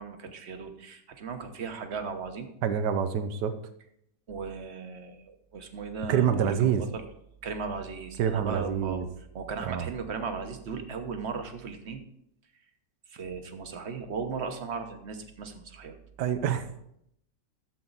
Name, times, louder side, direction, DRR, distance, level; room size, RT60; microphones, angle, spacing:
voice 1, 0.0-2.5 4.3-7.0 7.4-9.0 9.3-12.0 13.1-16.0, right 5 dB, 45° right, 6 dB, 1.2 m, -37 dB
voice 2, 2.6-3.5 6.1-6.8 8.2-9.1 9.7-9.9 16.2-16.7, right 8 dB, 80° right, 10 dB, 1.4 m, -26 dB
12.0 x 7.5 x 4.0 m, 0.75 s
omnidirectional pair, 1.8 m